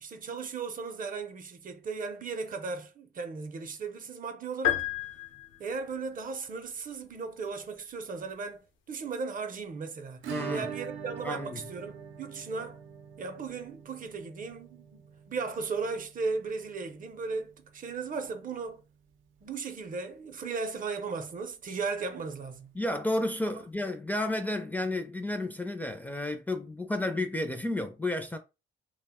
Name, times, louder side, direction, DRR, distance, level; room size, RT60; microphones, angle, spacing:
voice 1, 0.0-4.9 5.6-12.8 13.2-18.8 19.4-22.8, right 4 dB, 45° right, 0.6 m, -36 dB
sound 1, 4.6-6.0, left 12 dB, 75° left, 0.6 m, -31 dB
Acoustic guitar / Strum, 10.2-18.8 19.1-19.2 19.5-19.6 19.9-20.0 22.1-22.2 23.3-23.4, right 7 dB, 85° right, 0.6 m, -43 dB
voice 2, 10.3-10.7 11.2-11.6 22.7-28.4, left 1 dB, 10° left, 0.4 m, -32 dB
2.4 x 2.1 x 3.5 m
cardioid pair, 90°, 20 cm